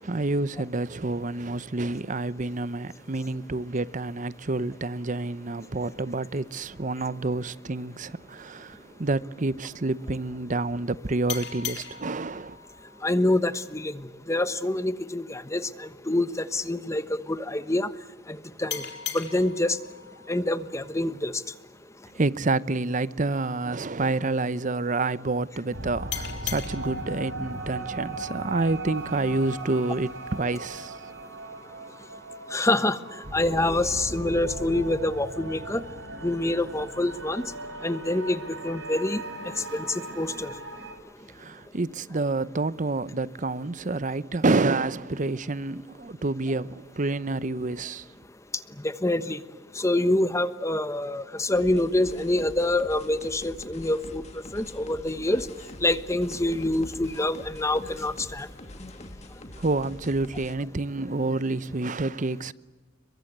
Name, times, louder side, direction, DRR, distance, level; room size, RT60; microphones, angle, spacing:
voice 1, 0.0-12.6 22.1-31.0 41.3-48.1 59.6-62.5, right 2 dB, 40° right, 0.8 m, -28 dB
sound 1, 11.3-14.5 18.7-21.9 26.1-29.1, left 8 dB, 60° left, 3.0 m, -40 dB
voice 2, 13.0-17.9 18.3-18.8 19.1-19.8 20.3-21.3 32.5-35.8 36.2-37.4 37.8-39.2 39.6-40.5 48.8-49.4 49.7-54.2 54.5-55.5 55.8-58.5, left 1 dB, 15° left, 1.1 m, -26 dB
sound 2, 25.7-40.9, right 2 dB, 90° right, 6.3 m, -38 dB
sound 3, 51.5-60.6, left 1 dB, 35° left, 2.5 m, -44 dB
30.0 x 23.0 x 8.0 m
head